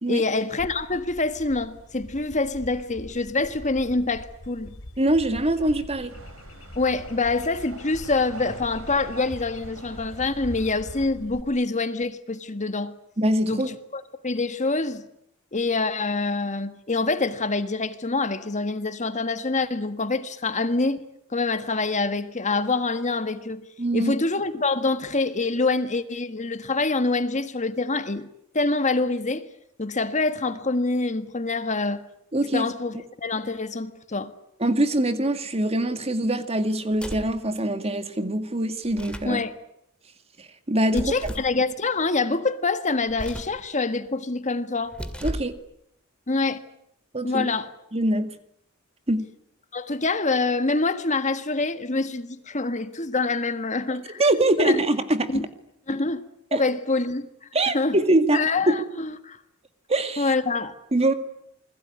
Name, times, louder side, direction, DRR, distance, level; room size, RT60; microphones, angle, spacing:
voice 1, 0.1-4.7 6.7-12.9 13.5-15.0 15.5-21.0 21.3-23.7 23.9-28.3 28.5-29.5 29.8-32.0 32.5-34.3 39.2-39.5 40.9-45.0 46.3-46.6 47.2-47.7 49.7-54.2 54.6-54.8 55.3-55.4 55.9-56.2 56.5-57.2 57.7-58.0 58.3-59.4 60.2-60.7, left 3 dB, 35° left, 1.6 m, -26 dB
sound 1, 0.6-11.4, left 1 dB, 75° left, 3.0 m, -43 dB
voice 2, 5.0-6.2 13.2-13.7 23.8-24.1 32.3-32.6 34.6-39.4 40.4-41.1 45.2-45.6 47.1-47.5 47.9-48.3 49.1-49.3 54.2-55.5 56.5-56.6 57.5-58.8 59.9-60.3 60.9-61.1, right 1 dB, 30° right, 2.0 m, -23 dB
sound 2, 6.1-11.1, right 2 dB, 80° right, 6.7 m, -45 dB
sound 3, 36.9-37.4 38.8-39.4 40.9-41.6 43.1-43.6 44.8-45.6, equal, 5° left, 2.4 m, -35 dB
28.5 x 21.0 x 9.7 m
head